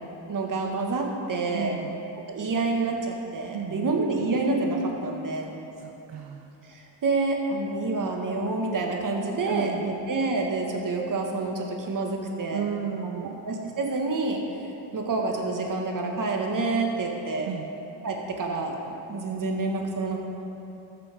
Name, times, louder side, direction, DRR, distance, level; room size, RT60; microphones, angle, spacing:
voice 1, 0.3-1.8 2.3-5.5 6.7-12.6 13.1-14.4 14.9-17.5 18.0-18.7 19.1-20.2, right 3 dB, 45° right, 1 dB, 1.7 m, -28 dB
voice 2, 1.5-2.0 3.5-3.9 5.8-6.5 9.5-9.8 12.5-13.4 17.4-17.7, right 8 dB, 70° right, 3 dB, 0.7 m, -33 dB
14.0 x 6.9 x 3.6 m, 3.0 s
supercardioid pair, 70°, 46 cm